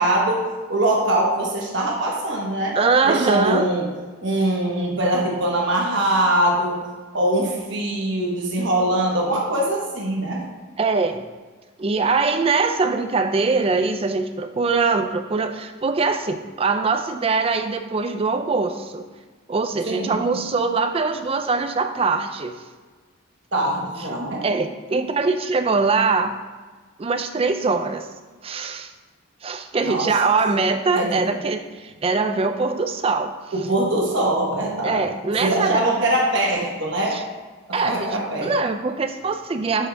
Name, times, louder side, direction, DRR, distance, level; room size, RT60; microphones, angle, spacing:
voice 1, 0.0-2.8 3.0-3.9 4.2-6.8 7.1-10.4 19.9-20.2 23.5-24.4 29.8-30.0 31.0-31.3 33.5-35.1 35.4-37.2 37.7-38.5, right 1 dB, 55° right, -2 dB, 1.0 m, -22 dB
voice 2, 2.8-3.7 10.8-11.3 11.8-19.1 19.5-22.5 24.4-26.3 27.0-28.1 28.4-28.9 29.4-33.3 34.8-35.8 37.1-37.2 37.7-39.9, right 4 dB, 25° right, 8 dB, 0.3 m, -22 dB
7.4 x 4.7 x 3.4 m, 1.4 s
head